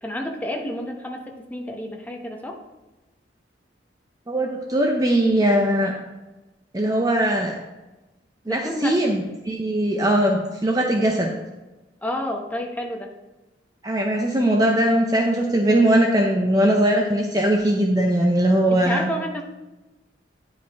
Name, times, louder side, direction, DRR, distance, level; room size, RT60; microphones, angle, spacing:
voice 1, 0.0-2.6 8.5-9.0 12.0-13.1 18.7-19.4, equal, 10° left, 2 dB, 0.8 m, -30 dB
voice 2, 4.3-5.9 6.7-7.5 8.5-11.3 13.8-19.1, right 1 dB, 20° right, 1 dB, 0.6 m, -20 dB
10.5 x 5.1 x 3.5 m, 1.1 s
head